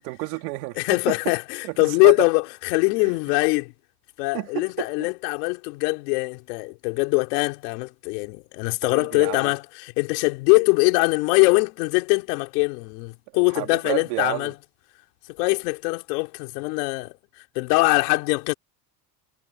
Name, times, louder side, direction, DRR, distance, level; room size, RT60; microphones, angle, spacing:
voice 1, 0.0-0.8 1.1-1.2 1.6-2.1 3.0-3.1 4.3-4.9 8.8-9.5 13.5-14.5, right 25 dB, 85° right, 3.4 m, -30 dB
voice 2, 0.8-3.7 4.2-14.5 15.4-17.2 17.5-18.5, left 29 dB, 85° left, 4.0 m, -22 dB
supercardioid pair, 100°, 46 cm